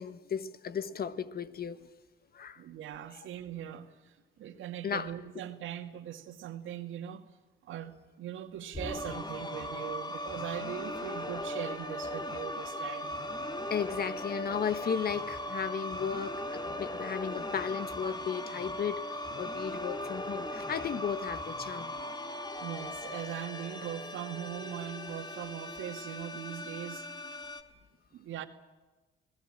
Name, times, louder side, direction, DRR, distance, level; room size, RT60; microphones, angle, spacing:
voice 1, 0.0-1.9 2.3-2.6 4.8-5.1 13.7-21.9, left 7 dB, 50° left, 1.5 m, -35 dB
voice 2, 2.6-7.3 7.6-13.1 22.6-27.0 28.1-28.5, right 10 dB, 80° right, 2.3 m, -40 dB
sound 1, 8.7-27.6, left 1 dB, 20° left, 2.4 m, -38 dB
27.5 x 18.5 x 9.0 m
cardioid pair, 90°, 20 cm